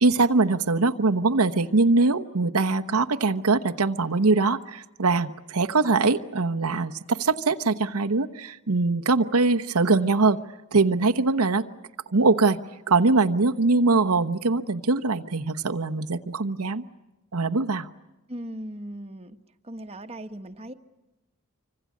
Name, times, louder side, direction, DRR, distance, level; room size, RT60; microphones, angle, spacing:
voice 1, 0.0-10.4 10.7-11.6 12.1-12.6 12.9-16.8 17.3-17.9, right 3 dB, 90° right, 6 dB, 1.0 m, -22 dB
voice 2, 18.3-19.4 19.6-20.7, right 1 dB, 30° right, 6 dB, 1.2 m, -38 dB
26.5 x 25.5 x 8.5 m, 1.0 s
head